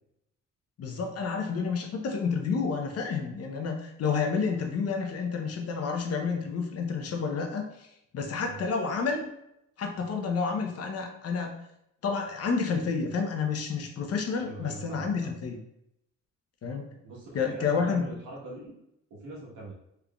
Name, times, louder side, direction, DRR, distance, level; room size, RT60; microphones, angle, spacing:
voice 1, 0.8-7.9 8.1-9.3 9.8-11.5 12.0-15.6 16.6-16.9 17.3-18.1, left 5 dB, 55° left, 3 dB, 0.7 m, -30 dB
voice 2, 14.4-15.3 17.0-18.7 19.1-19.7, right 2 dB, 90° right, -3 dB, 1.2 m, -42 dB
3.7 x 3.4 x 2.3 m, 0.79 s
cardioid pair, 90°, 30 cm